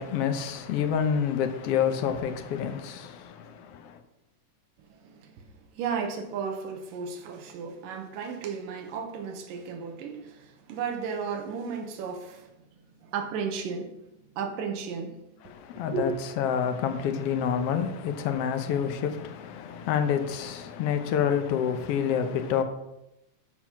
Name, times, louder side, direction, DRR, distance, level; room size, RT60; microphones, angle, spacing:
voice 1, 0.0-4.0 15.4-16.1 16.4-22.6, left 8 dB, 75° left, 1.4 m, -28 dB
voice 2, 4.9-12.5 13.0-14.0 14.3-15.4 15.8-16.1, right 5 dB, 85° right, 2.8 m, -34 dB
13.5 x 4.6 x 5.8 m
omnidirectional pair, 3.8 m